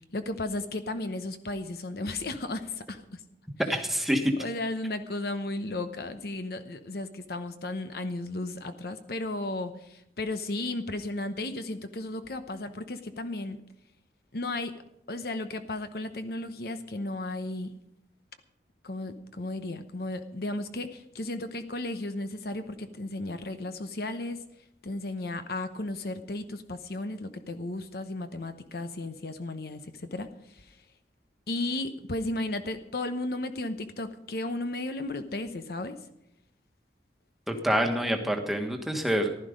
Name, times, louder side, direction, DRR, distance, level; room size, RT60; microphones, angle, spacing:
voice 1, 0.1-3.2 4.4-13.6 14.3-14.8 15.1-17.7 18.8-24.4 24.8-30.8 31.5-36.0, left 2 dB, 60° left, 9 dB, 0.9 m, -34 dB
voice 2, 3.7-4.3 37.5-39.5, equal, ahead, 3 dB, 1.4 m, -27 dB
15.0 x 12.0 x 5.1 m, 0.79 s
head